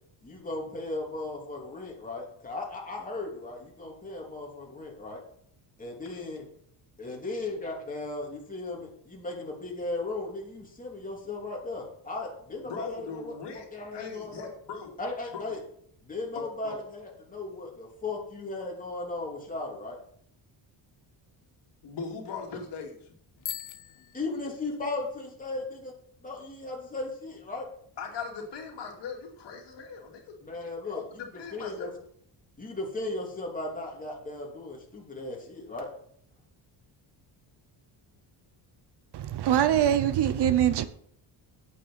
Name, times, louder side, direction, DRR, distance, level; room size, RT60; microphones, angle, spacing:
voice 1, 0.2-5.2 5.8-6.5 7.0-14.5 15.0-15.6 16.0-20.0 24.1-25.9 26.2-27.6 30.4-31.9 32.6-35.9, left 2 dB, 20° left, 3.0 m, -36 dB
voice 2, 12.6-14.9 15.3-15.5 16.3-16.8 21.8-23.0 28.0-30.4 30.9-31.9, left 5 dB, 65° left, 2.6 m, -40 dB
Bicycle bell, 23.4-25.1, left 10 dB, 45° left, 0.6 m, -41 dB
voice 3, 39.1-40.8, right 10 dB, 60° right, 0.8 m, -23 dB
8.9 x 7.6 x 5.7 m
cardioid pair, 140°, 45 cm